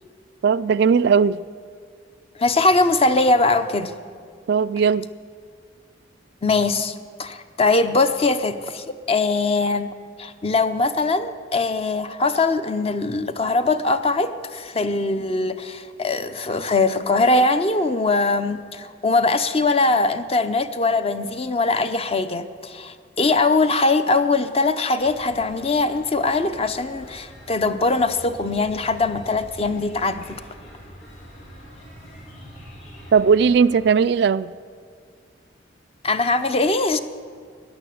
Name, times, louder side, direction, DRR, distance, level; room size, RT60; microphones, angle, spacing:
voice 1, 0.4-1.4 4.5-5.1 33.1-34.5, right 6 dB, 60° right, 15 dB, 0.3 m, -17 dB
voice 2, 2.4-3.9 6.4-9.9 10.2-30.4 36.0-37.0, left 3 dB, 30° left, 10 dB, 0.6 m, -21 dB
sound 1, 25.0-33.9, equal, 75° left, 3.9 m, -44 dB
14.0 x 10.0 x 7.7 m, 2.1 s
head